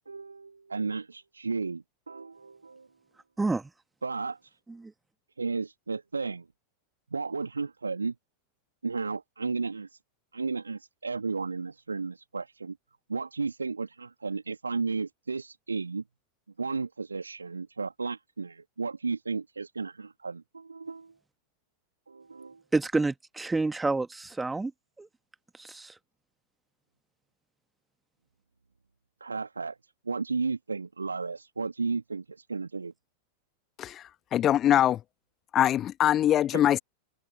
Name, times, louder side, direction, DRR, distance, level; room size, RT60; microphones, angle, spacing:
voice 1, 0.0-2.9 4.0-4.5 5.4-6.5 7.1-8.2 8.8-10.0 10.3-12.8 13.1-16.0 16.6-21.1 22.1-22.6 29.2-29.8 30.1-32.9 36.5-36.6, right 4 dB, 75° right, 2.2 m, -33 dB
voice 2, 3.4-3.7 4.8-4.9 22.7-24.7 25.0-25.1 25.6-25.9, right 3 dB, 10° right, 1.7 m, -28 dB
voice 3, 34.3-35.0 35.5-36.8, left 11 dB, 30° left, 1.5 m, -23 dB
figure-of-eight pair, 90°, 0 cm